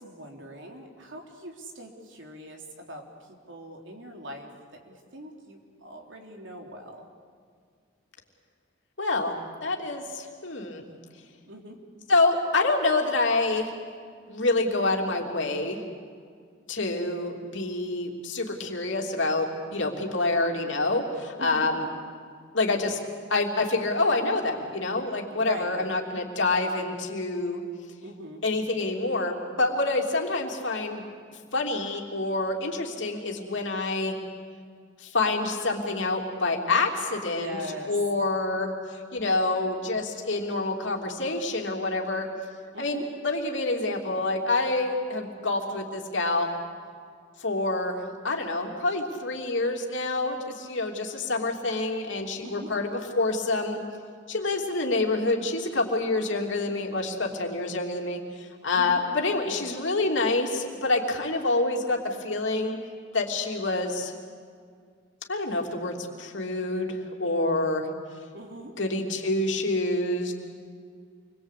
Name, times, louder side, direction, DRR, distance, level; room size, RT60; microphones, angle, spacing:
voice 1, 0.0-3.1 3.5-4.5 4.8-7.0 11.4-11.8 21.4-21.7 25.3-25.9 28.0-28.4 37.3-37.9 42.7-43.1 52.4-52.7 58.7-59.0 68.3-68.7, equal, 70° right, 2 dB, 3.6 m, -41 dB
voice 2, 9.0-10.8 12.1-13.7 14.3-15.8 16.7-21.9 22.5-23.0 23.3-27.6 28.4-31.0 31.5-34.2 35.0-37.6 37.9-42.3 42.8-46.5 47.4-53.8 54.3-62.8 63.1-64.1 65.3-67.9 68.8-70.3, left 2 dB, 70° left, 1 dB, 3.2 m, -27 dB
28.0 x 22.0 x 8.5 m, 2.1 s
head